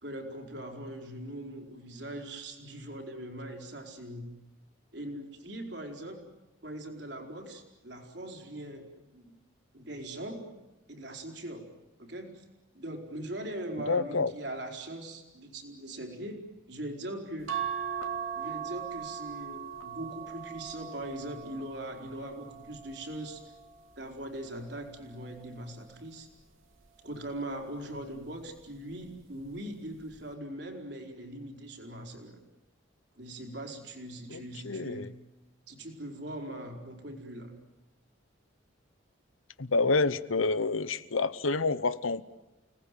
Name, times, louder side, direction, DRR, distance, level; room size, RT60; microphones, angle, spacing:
voice 1, 0.0-4.3 4.9-6.2 6.6-9.4 9.7-10.5 10.9-11.7 12.0-12.4 12.7-16.4 16.7-17.6 18.3-23.4 24.0-26.3 27.0-32.4 33.2-35.1 35.7-37.5, right 1 dB, 55° right, 3 dB, 4.5 m, -41 dB
voice 2, 13.9-14.3 34.3-35.1 39.6-42.3, left 3 dB, 90° left, 15 dB, 1.0 m, -28 dB
sound 1, 17.5-24.1 24.7-26.1 27.4-27.8 28.1-28.2, right 8 dB, 85° right, 3.1 m, -40 dB
29.5 x 19.0 x 9.2 m, 1.0 s
head